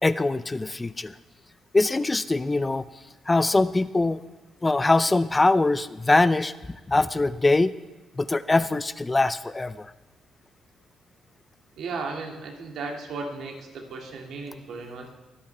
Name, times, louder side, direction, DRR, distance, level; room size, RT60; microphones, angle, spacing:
voice 1, 0.0-1.1 1.7-2.9 3.3-4.2 4.6-6.5 6.9-7.7 8.2-9.9, left 2 dB, 20° left, 15 dB, 0.4 m, -22 dB
voice 2, 11.8-15.1, right 4 dB, 75° right, 2 dB, 2.0 m, -35 dB
22.5 x 8.6 x 3.3 m, 1.2 s
cardioid pair, 90°, 0 cm